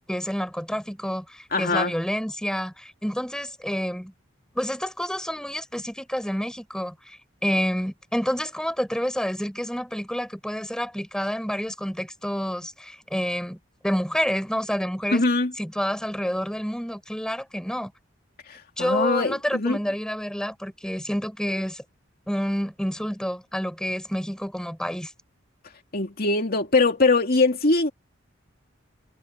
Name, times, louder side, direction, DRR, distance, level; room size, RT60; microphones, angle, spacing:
voice 1, 0.1-4.1 4.5-13.6 13.8-15.2 15.6-17.9 18.8-21.8 22.3-25.1, equal, 5° left, 4.5 m, -28 dB
voice 2, 1.5-1.9 15.1-15.5 18.5-19.8 25.9-27.9, left 3 dB, 50° left, 2.8 m, -22 dB
head